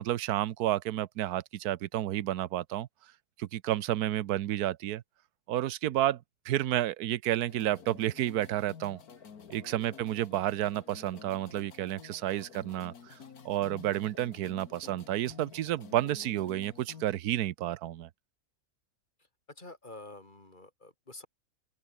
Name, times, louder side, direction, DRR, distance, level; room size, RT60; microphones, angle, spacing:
voice 1, 0.0-2.9 3.4-5.0 5.5-6.2 6.5-9.0 9.5-13.1 13.4-18.1, right 13 dB, 80° right, 1.3 m, -31 dB
sound 1, 7.5-17.0, left 6 dB, 75° left, 2.2 m, -51 dB
voice 2, 9.5-9.9 19.5-21.3, left 2 dB, 30° left, 3.6 m, -49 dB
open air
omnidirectional pair, 1.6 m